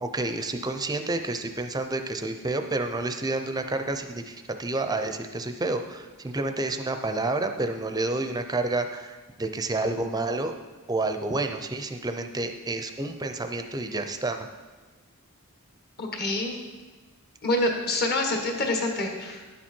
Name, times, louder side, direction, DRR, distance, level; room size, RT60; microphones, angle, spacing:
voice 1, 0.0-10.5 10.9-14.4, right 2 dB, 15° right, 7 dB, 0.5 m, -29 dB
voice 2, 16.0-16.5 17.4-19.4, left 2 dB, 45° left, 2 dB, 1.5 m, -26 dB
10.5 x 7.4 x 4.4 m, 1.3 s
head